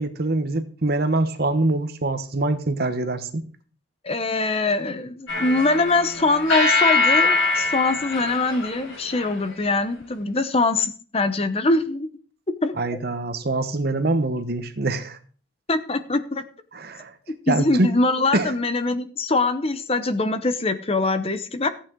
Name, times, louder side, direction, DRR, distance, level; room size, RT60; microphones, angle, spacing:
voice 1, 0.0-3.5 12.8-15.2 16.7-17.1 17.5-17.9 18.3-18.5, right 2 dB, 50° right, 10 dB, 1.0 m, -24 dB
voice 2, 4.0-12.1 12.6-13.0 15.7-16.4 17.5-21.7, left 3 dB, 30° left, 11 dB, 0.8 m, -23 dB
sound 1, 5.3-9.5, left 3 dB, 70° left, 5.1 m, -23 dB
15.0 x 8.6 x 3.8 m, 0.42 s
head